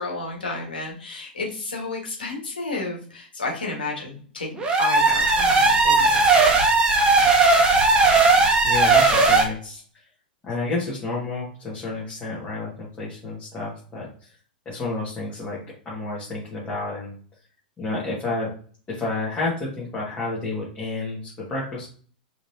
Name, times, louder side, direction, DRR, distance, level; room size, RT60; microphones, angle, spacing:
voice 1, 0.0-6.4, left 3 dB, 75° left, 0 dB, 1.7 m, -32 dB
sound 1, 4.6-9.4, right 3 dB, 20° right, 1.0 m, -17 dB
voice 2, 8.6-9.8 10.4-14.3 14.7-15.6 15.9-17.1 17.8-18.5 18.9-21.9, left 3 dB, 20° left, -7 dB, 1.8 m, -30 dB
4.8 x 3.2 x 2.8 m, 0.44 s
figure-of-eight pair, 95°, 5 cm